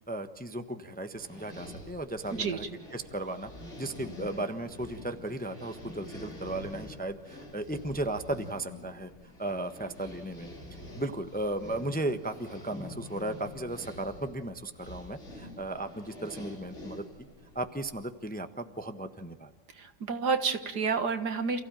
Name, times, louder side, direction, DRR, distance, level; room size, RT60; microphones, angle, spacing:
voice 1, 0.0-2.6 2.9-3.5 3.8-9.1 9.4-10.5 10.9-17.1 17.5-19.5, right 1 dB, 5° left, 8 dB, 0.9 m, -35 dB
sound 1, 1.1-18.1, left 1 dB, 40° left, 4.2 m, -46 dB
voice 2, 19.7-21.6, right 5 dB, 75° right, 8 dB, 2.2 m, -29 dB
28.5 x 16.0 x 9.1 m, 1.2 s
omnidirectional pair, 1.8 m